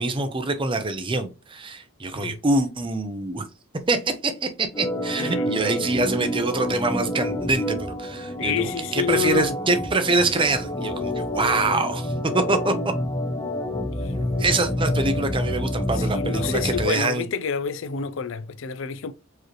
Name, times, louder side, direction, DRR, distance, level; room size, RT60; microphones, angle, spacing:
voice 1, 0.0-3.4 3.9-12.7 14.4-17.2, right 3 dB, 25° right, 0.6 m, -25 dB
Organ, 4.7-16.9, left 1 dB, 20° left, 0.7 m, -28 dB
voice 2, 5.2-5.5 8.4-9.6 13.9-15.2 15.9-19.1, left 6 dB, 70° left, 0.4 m, -29 dB
4.7 x 3.1 x 3.0 m
head